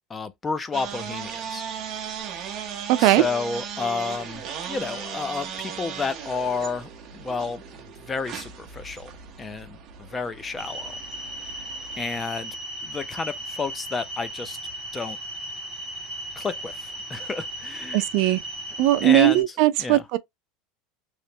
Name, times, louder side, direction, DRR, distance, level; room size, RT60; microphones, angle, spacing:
voice 1, 0.1-1.6 3.0-7.6 8.1-9.1 9.4-11.0 12.0-12.6 12.8-14.6 14.9-15.2 16.4-18.3 19.0-19.4 19.8-20.0, left 4 dB, 15° left, 0.5 m, -31 dB
sound 1, 0.7-12.2, right 7 dB, 35° right, 0.8 m, -37 dB
voice 2, 2.9-3.2 17.9-18.4 18.8-20.2, right 15 dB, 60° right, 0.4 m, -19 dB
sound 2, 10.6-19.4, right 1 dB, 10° right, 2.0 m, -36 dB
3.2 x 2.9 x 2.7 m
supercardioid pair, 150°, 0 cm